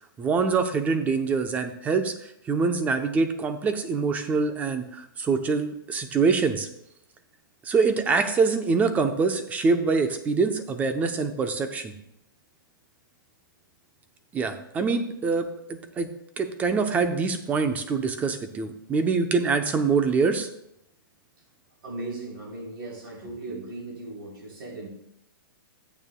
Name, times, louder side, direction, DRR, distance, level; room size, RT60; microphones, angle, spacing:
voice 1, 0.2-2.1 2.5-6.7 7.6-11.9 14.3-16.1 16.4-20.5, right 4 dB, 15° right, 8 dB, 0.6 m, -25 dB
voice 2, 21.8-24.9, right 2 dB, 80° right, -1 dB, 3.8 m, -37 dB
13.5 x 9.0 x 2.2 m, 0.78 s
hypercardioid pair, 155°, 12 cm